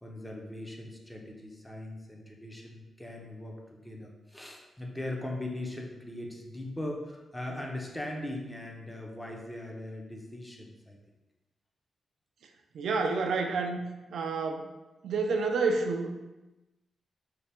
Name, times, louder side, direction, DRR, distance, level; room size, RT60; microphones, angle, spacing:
voice 1, 0.0-11.0, left 1 dB, 10° left, 0 dB, 0.5 m, -40 dB
voice 2, 12.7-14.7 15.0-16.1, right 4 dB, 80° right, 4 dB, 0.3 m, -29 dB
3.3 x 2.1 x 4.2 m, 1.1 s
wide cardioid pair, 130°, 0 cm